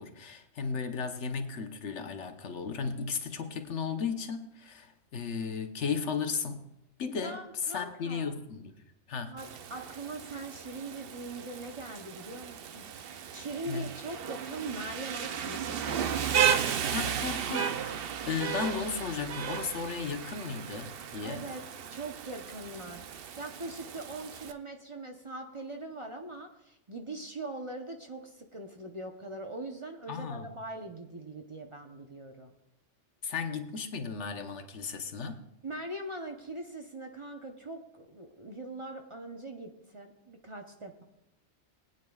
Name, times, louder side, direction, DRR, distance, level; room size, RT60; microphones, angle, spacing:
voice 1, 0.0-6.7 7.0-8.7 9.1-9.4 13.7-14.0 16.9-18.0 18.2-21.5 30.1-30.5 33.2-35.4, left 5 dB, 75° left, 1.2 m, -35 dB
voice 2, 7.2-8.4 9.2-16.3 21.2-21.6 21.9-32.6 35.6-41.0, right 2 dB, 30° right, 0.8 m, -42 dB
Rain, 9.4-24.5, right 8 dB, 60° right, 0.8 m, -34 dB
21.5 x 9.2 x 2.3 m
omnidirectional pair, 1.2 m